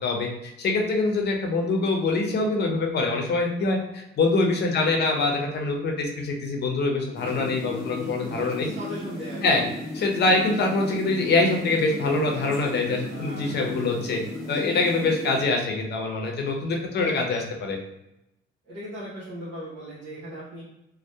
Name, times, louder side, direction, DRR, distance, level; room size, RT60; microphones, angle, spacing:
voice 1, 0.0-8.7 9.4-9.6 9.9-14.2 14.5-17.8, left 3 dB, 55° left, 2 dB, 0.6 m, -24 dB
voice 2, 4.6-5.0 8.2-9.6 13.1-13.8 16.6-17.1 18.6-20.6, equal, 60° right, -9 dB, 0.8 m, -39 dB
sound 1, 7.1-15.4, left 1 dB, ahead, 1.0 m, -35 dB
2.7 x 2.1 x 2.2 m, 0.87 s
cardioid pair, 90°, 20 cm